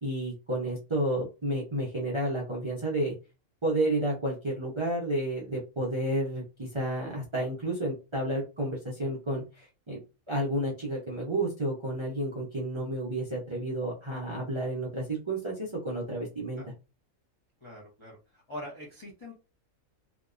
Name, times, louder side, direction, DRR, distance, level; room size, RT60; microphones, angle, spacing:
voice 1, 0.0-3.1 3.6-10.0 10.3-16.6, right 1 dB, 35° right, -4 dB, 0.4 m, -31 dB
voice 2, 17.6-19.3, left 1 dB, 35° left, -4 dB, 0.5 m, -43 dB
2.8 x 2.1 x 2.4 m, 0.30 s
omnidirectional pair, 1.4 m